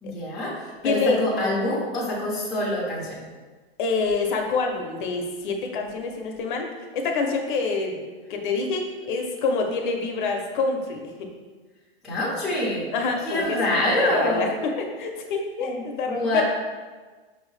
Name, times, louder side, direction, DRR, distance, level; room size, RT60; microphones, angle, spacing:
voice 1, 0.0-3.3 12.0-12.8 13.2-14.5 15.6-16.4, left 1 dB, ahead, -8 dB, 0.5 m, -26 dB
voice 2, 0.8-1.5 3.8-11.3 12.9-13.6 14.0-16.4, left 4 dB, 55° left, 3 dB, 0.6 m, -27 dB
5.3 x 2.7 x 3.1 m, 1.4 s
supercardioid pair, 165°, 31 cm